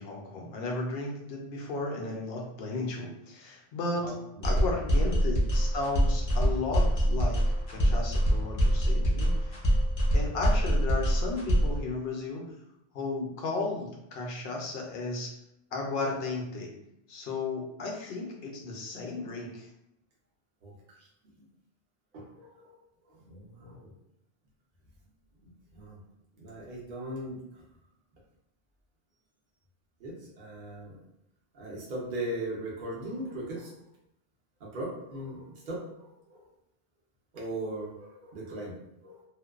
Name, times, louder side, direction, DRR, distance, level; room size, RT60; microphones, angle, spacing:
voice 1, 0.0-4.1 4.4-7.4 7.7-9.8 10.1-12.4 12.9-15.3 15.7-16.7 17.1-19.7, left 3 dB, 70° left, 0 dB, 0.8 m, -34 dB
voice 2, 4.0-4.7 20.6-20.7 22.1-22.7 23.2-23.9 25.4-26.0 26.4-27.4 30.0-31.0 31.5-33.7 34.6-36.4 37.3-38.7 39.0-39.2, right 1 dB, 60° right, -3 dB, 0.8 m, -39 dB
sound 1, 4.4-11.8, equal, 40° left, 0.6 m, -24 dB
2.5 x 2.1 x 2.3 m, 0.83 s
omnidirectional pair, 1.1 m